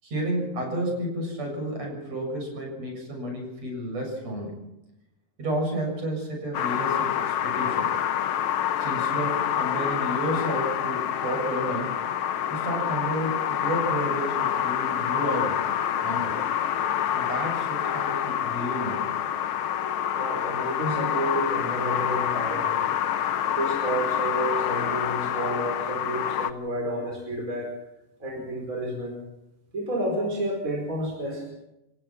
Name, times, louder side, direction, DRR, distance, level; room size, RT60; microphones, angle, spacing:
voice 1, 0.0-4.6 5.4-7.9 8.8-11.9 12.5-15.6 16.0-16.4 17.1-19.1, right 1 dB, 55° right, 1 dB, 8.3 m, -31 dB
sound 1, 6.5-26.5, left 9 dB, 80° left, 1.1 m, -27 dB
voice 2, 20.2-22.9 23.6-27.7 28.2-29.2 29.7-31.5, right 1 dB, 25° right, 0 dB, 5.2 m, -30 dB
28.5 x 16.0 x 6.1 m, 0.90 s
omnidirectional pair, 3.6 m